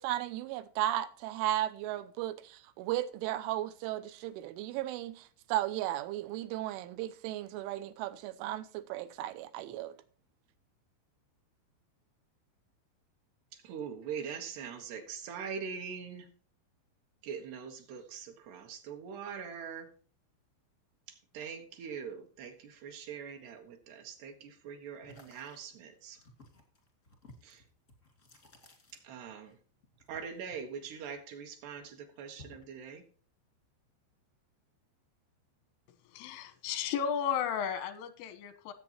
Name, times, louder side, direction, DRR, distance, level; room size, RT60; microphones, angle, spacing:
voice 1, 0.0-9.9, right 13 dB, 85° right, 3.2 m, -35 dB
voice 2, 13.5-16.3 17.2-19.9 21.1-26.2 27.4-27.6 28.9-29.6 30.1-33.0, right 6 dB, 70° right, 3.2 m, -43 dB
sound 1, 25.0-29.5 29.8-31.4 31.8-32.8, left 2 dB, 45° left, 0.9 m, -57 dB
voice 3, 36.1-38.7, left 8 dB, 90° left, 3.7 m, -34 dB
17.0 x 7.9 x 3.0 m
omnidirectional pair, 5.5 m